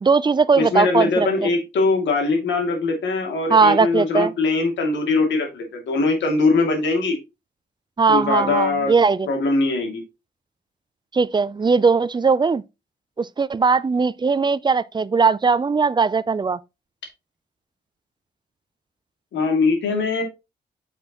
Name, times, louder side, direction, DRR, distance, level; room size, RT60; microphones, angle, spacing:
voice 1, 0.0-1.3 3.5-4.3 8.0-9.3 11.1-12.6 13.2-16.6, right 4 dB, 25° right, 0.5 m, -19 dB
voice 2, 0.5-7.2 8.1-9.0 9.3-10.0 19.3-20.2, left 3 dB, 90° left, 2.5 m, -21 dB
7.7 x 6.1 x 3.0 m
cardioid pair, 80°, 18 cm